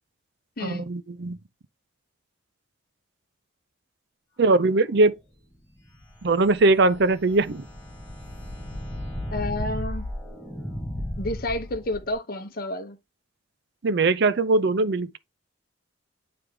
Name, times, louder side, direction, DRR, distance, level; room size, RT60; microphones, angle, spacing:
voice 1, 0.6-1.4 4.4-5.1 6.2-7.7 13.8-15.2, right 3 dB, 55° right, 0.5 m, -21 dB
sound 1, 5.8-12.1, left 1 dB, 10° left, 3.2 m, -35 dB
voice 2, 9.3-10.1 11.2-13.0, left 1 dB, 45° left, 0.8 m, -30 dB
9.2 x 3.4 x 3.5 m
head